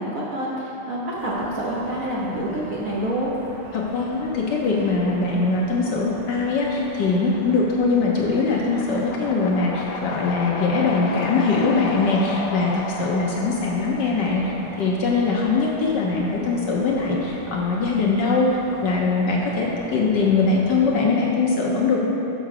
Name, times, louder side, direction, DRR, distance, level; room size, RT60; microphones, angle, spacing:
voice 1, 0.0-3.3, right 1 dB, 55° right, -6 dB, 1.0 m, -27 dB
sound 1, 1.1-21.0, right 1 dB, 75° right, 2.1 m, -42 dB
voice 2, 3.7-18.5 18.8-22.0, left 4 dB, 65° left, -3 dB, 1.2 m, -22 dB
sound 2, 8.7-14.8, left 4 dB, 85° left, 1.6 m, -33 dB
6.0 x 5.6 x 6.5 m, 2.9 s
omnidirectional pair, 2.4 m